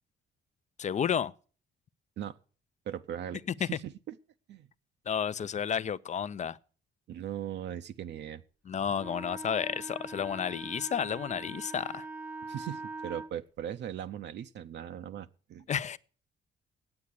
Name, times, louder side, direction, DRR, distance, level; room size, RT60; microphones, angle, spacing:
voice 1, 0.8-1.3 3.6-3.7 5.1-6.6 8.7-12.1 15.7-16.0, left 8 dB, 40° left, 0.5 m, -31 dB
voice 2, 2.9-4.2 4.5-4.7 7.1-8.4 12.4-15.6, right 10 dB, 65° right, 0.6 m, -39 dB
Wind instrument woodwind instrument, 9.0-13.3, right 3 dB, 10° right, 0.6 m, -42 dB
9.7 x 8.5 x 8.3 m
cardioid pair, 125°, 19 cm